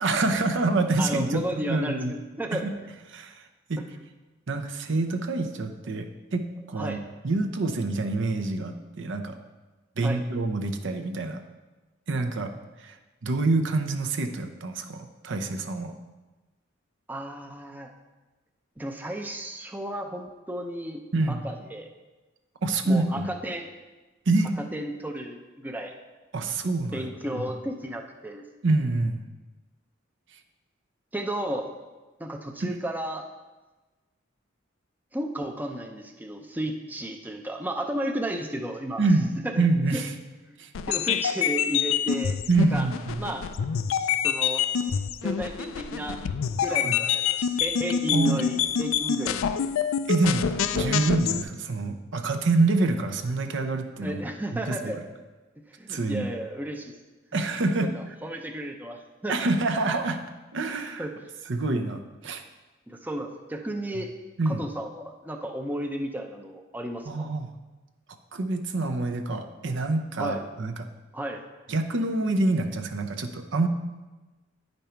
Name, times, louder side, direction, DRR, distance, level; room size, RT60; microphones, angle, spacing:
voice 1, 0.0-2.1 2.5-2.7 3.1-3.4 3.7-3.8 4.5-6.4 6.7-7.0 7.2-9.3 10.0-11.4 12.1-12.5 12.8-12.9 13.2-15.9 21.1-21.4 22.6-23.3 24.3-24.5 26.3-27.1 27.3-27.4 28.6-29.2 32.6-32.7 39.0-40.1 40.6-40.7 42.5-43.2 46.8-46.9 48.1-48.4 50.1-54.2 54.7-55.0 55.9-56.3 57.3-57.9 59.3-60.2 60.5-61.1 61.5-62.4 64.4-64.6 67.1-67.5 68.3-70.7 71.7-73.7, right 3 dB, 65° right, 6 dB, 0.7 m, -26 dB
voice 2, 1.0-2.7 6.8-7.0 10.0-10.2 17.1-17.9 18.8-21.9 22.8-23.7 24.6-25.9 26.9-28.4 31.1-31.7 32.2-33.2 35.1-39.1 39.4-39.7 39.9-40.0 40.5-40.6 40.9-42.4 42.7-42.9 43.2-43.4 44.2-44.6 45.2-49.4 50.7-51.0 54.0-55.0 55.7-57.0 57.8-59.3 61.0-61.1 62.9-64.1 64.5-67.3 70.2-70.4 71.1-71.4, right 1 dB, 10° right, 3 dB, 0.5 m, -33 dB
sound 1, 40.7-51.4, left 8 dB, 85° left, 0.4 m, -27 dB
9.4 x 5.3 x 4.4 m, 1.2 s
head